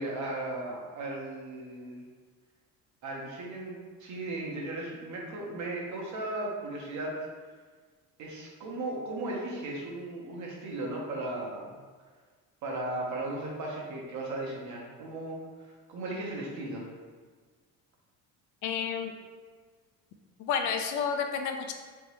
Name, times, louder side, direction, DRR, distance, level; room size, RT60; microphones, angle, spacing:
voice 1, 0.0-2.0 3.0-7.1 8.2-11.8 12.6-15.4 15.6-16.9, right 2 dB, 60° right, -2 dB, 0.9 m, -36 dB
voice 2, 18.6-19.1 20.4-21.7, left 6 dB, 60° left, 5 dB, 0.5 m, -30 dB
3.5 x 3.0 x 2.9 m, 1.5 s
cardioid pair, 105°, 33 cm